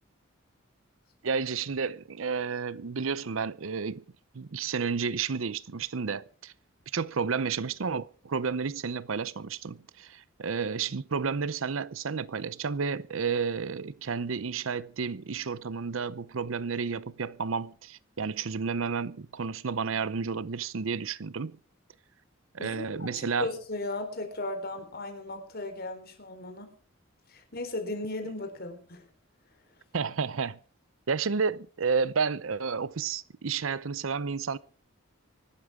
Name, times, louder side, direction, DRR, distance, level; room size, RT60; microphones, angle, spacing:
voice 1, 1.2-4.0 4.3-6.5 6.9-21.6 22.5-23.5 29.9-30.6 31.1-34.6, right 5 dB, 70° right, 0.7 m, -31 dB
voice 2, 22.6-26.7 27.3-29.0, left 2 dB, 50° left, 4.0 m, -36 dB
24.5 x 12.5 x 3.6 m
head